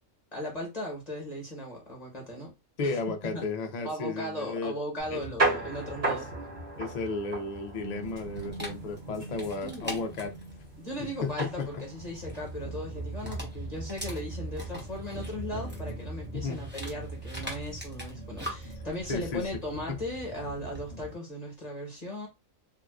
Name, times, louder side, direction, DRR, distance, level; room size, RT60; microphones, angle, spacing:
voice 1, 0.3-2.5 2.8-3.0 3.3-3.4 3.8-6.3 9.6-10.0 10.8-22.3, left 1 dB, 30° left, 1.1 m, -37 dB
voice 2, 2.8-4.7 5.1-5.5 6.1-6.2 6.8-10.3 11.0-11.7 16.3-16.6 19.1-19.4 19.9-20.0, left 3 dB, 55° left, 0.4 m, -34 dB
sound 1, 5.0-21.1, right 2 dB, 50° right, 2.1 m, -37 dB
Dog, 8.0-20.9, equal, 10° right, 0.9 m, -45 dB
3.7 x 2.4 x 2.3 m
omnidirectional pair, 1.4 m